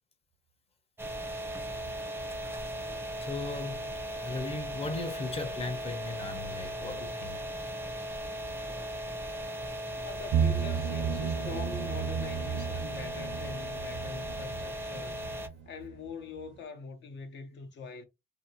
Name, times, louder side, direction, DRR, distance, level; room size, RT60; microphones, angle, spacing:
sound 1, 1.0-15.5, right 1 dB, 10° right, 0.5 m, -37 dB
voice 1, 3.2-7.4, left 3 dB, 30° left, 0.8 m, -37 dB
voice 2, 10.0-15.2 15.6-18.0, left 5 dB, 65° left, 0.8 m, -43 dB
sound 2, 10.3-16.1 16.4-16.5, right 7 dB, 70° right, 0.5 m, -33 dB
2.7 x 2.0 x 2.7 m
cardioid pair, 90°, 20 cm